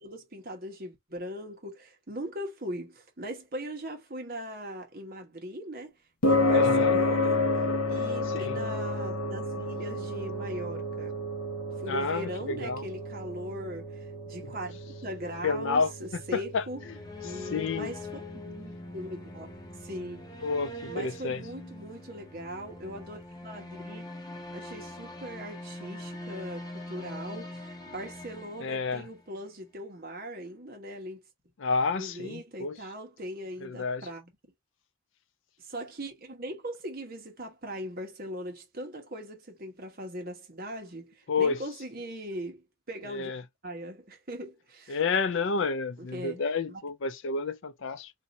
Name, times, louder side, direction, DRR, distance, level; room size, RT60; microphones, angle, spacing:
voice 1, 0.0-5.9 6.2-7.5 7.8-11.1 11.8-16.8 17.2-20.3 20.9-24.0 24.5-31.2 32.0-34.3 35.6-43.3 43.6-45.0 46.0-46.4 46.7-46.8, equal, 40° right, 1.1 m, -40 dB
sound 1, 6.2-22.7, left 2 dB, 85° left, 1.0 m, -31 dB
voice 2, 6.5-7.0 8.3-8.5 11.9-12.8 14.4-14.5 15.4-15.9 16.3-16.6 17.5-17.9 20.4-21.4 28.6-29.1 31.6-32.8 33.6-34.1 41.3-41.6 43.1-43.4 44.9-48.1, left 4 dB, 60° left, 0.4 m, -30 dB
sound 2, 16.5-29.4, left 2 dB, 20° left, 0.6 m, -43 dB
2.7 x 2.6 x 4.0 m
head